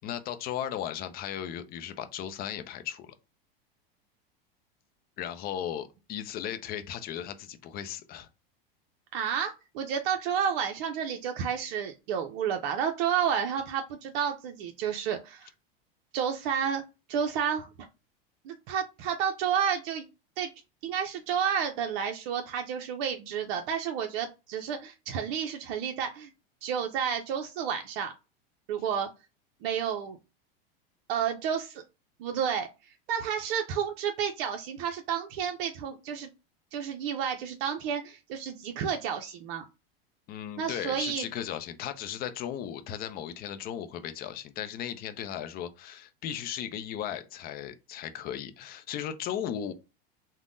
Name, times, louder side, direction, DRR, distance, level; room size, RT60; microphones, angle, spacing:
voice 1, 0.0-3.1 5.2-8.3 40.3-49.7, left 10 dB, 30° left, 0.4 m, -36 dB
voice 2, 9.1-15.5 16.1-16.8 17.1-17.7 18.4-20.1 20.4-20.5 20.8-26.3 26.6-28.1 28.7-29.1 29.6-30.2 31.1-31.8 32.2-32.7 33.1-36.3 36.7-39.6 40.6-41.2, right 8 dB, 60° right, 0.5 m, -31 dB
3.3 x 2.1 x 2.5 m
hypercardioid pair, 110°, 30 cm